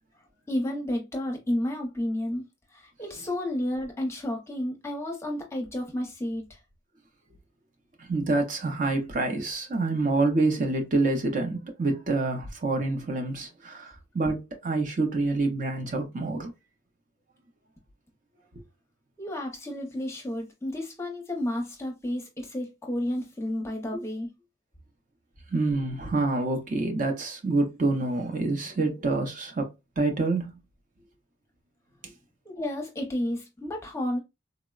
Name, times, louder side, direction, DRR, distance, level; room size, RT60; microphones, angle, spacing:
voice 1, 0.5-6.6 19.2-24.3 32.6-34.2, left 1 dB, 15° left, 0.6 m, -31 dB
voice 2, 8.0-16.5 18.5-18.6 23.9-24.0 25.5-30.5 32.0-32.1, right 2 dB, 40° right, 0.5 m, -27 dB
3.8 x 2.0 x 2.3 m
head